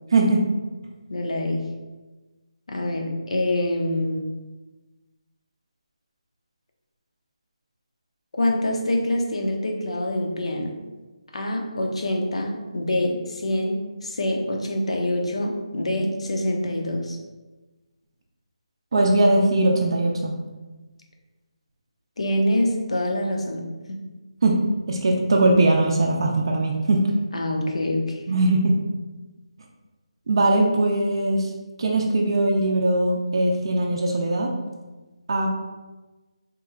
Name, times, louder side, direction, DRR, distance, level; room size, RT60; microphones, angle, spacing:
voice 1, 0.1-0.4 18.9-20.4 24.4-24.6 24.9-27.0 28.3-28.8 30.3-31.5 31.8-34.5 35.3-35.5, right 2 dB, 50° right, -1 dB, 0.4 m, -20 dB
voice 2, 1.1-1.7 2.7-4.2 8.4-10.7 11.3-17.2 22.2-24.0 27.3-28.2, left 1 dB, 70° left, 2 dB, 0.6 m, -25 dB
2.9 x 2.1 x 3.6 m, 1.2 s
figure-of-eight pair, 170°, 3 cm